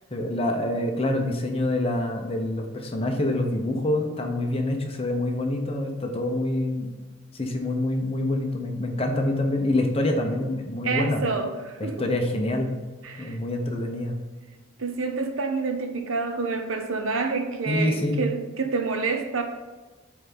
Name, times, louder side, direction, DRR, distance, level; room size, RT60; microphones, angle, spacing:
voice 1, 0.1-6.9 7.3-11.4 11.8-12.7 13.2-14.1 17.7-18.2, left 1 dB, 25° left, 3 dB, 0.9 m, -26 dB
voice 2, 10.8-12.0 13.0-13.4 14.8-19.4, right 4 dB, 75° right, 5 dB, 0.9 m, -28 dB
8.0 x 3.5 x 5.4 m, 1.3 s
head